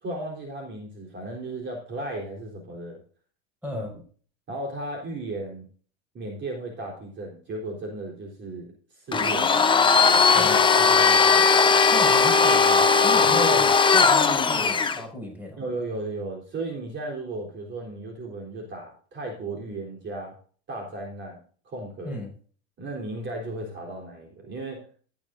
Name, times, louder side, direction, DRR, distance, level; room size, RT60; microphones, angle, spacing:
voice 1, 0.0-3.0 3.7-3.8 4.5-5.7 6.1-9.6 10.3-11.5 13.1-13.7 15.6-20.4 20.7-22.2 22.8-24.9, right 2 dB, 35° right, 0 dB, 3.8 m, -35 dB
voice 2, 3.6-3.9 10.4-10.6 11.8-15.6 22.0-22.3, left 1 dB, 5° right, 2 dB, 5.4 m, -35 dB
Domestic sounds home sounds, 9.1-15.0, left 5 dB, 15° left, 1.0 m, -18 dB
14.0 x 9.7 x 2.6 m, 0.43 s
supercardioid pair, 120°, 33 cm